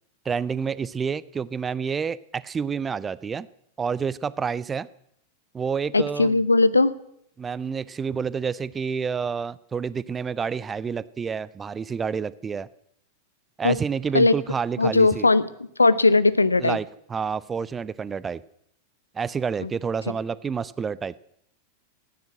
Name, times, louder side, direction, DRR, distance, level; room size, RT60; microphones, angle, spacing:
voice 1, 0.2-3.5 3.8-4.9 5.5-6.4 7.4-12.7 13.6-15.3 16.6-16.8 17.1-18.4 19.1-21.2, right 6 dB, 20° right, 19 dB, 0.5 m, -29 dB
voice 2, 5.9-6.9 13.6-13.8 14.1-14.3 14.8-15.5 15.8-16.8 19.6-19.7, left 3 dB, 80° left, 17 dB, 0.6 m, -18 dB
15.0 x 9.4 x 7.6 m, 0.73 s
figure-of-eight pair, 90°, 0 cm